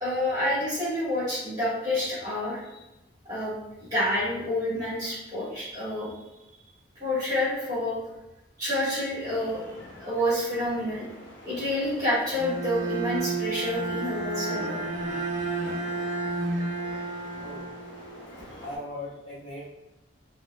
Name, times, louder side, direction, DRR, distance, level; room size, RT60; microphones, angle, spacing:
voice 1, 0.0-2.8 3.2-6.1 7.0-8.0 8.6-9.6 10.0-11.0 11.4-14.8, left 1 dB, 20° right, -9 dB, 1.4 m, -28 dB
sound 1, 9.2-18.8, left 1 dB, 85° left, 0.7 m, -46 dB
Bowed string instrument, 12.4-18.4, right 3 dB, 45° right, 0.7 m, -31 dB
voice 2, 18.6-19.7, left 2 dB, 25° left, -8 dB, 0.7 m, -39 dB
4.6 x 2.1 x 2.2 m, 0.99 s
head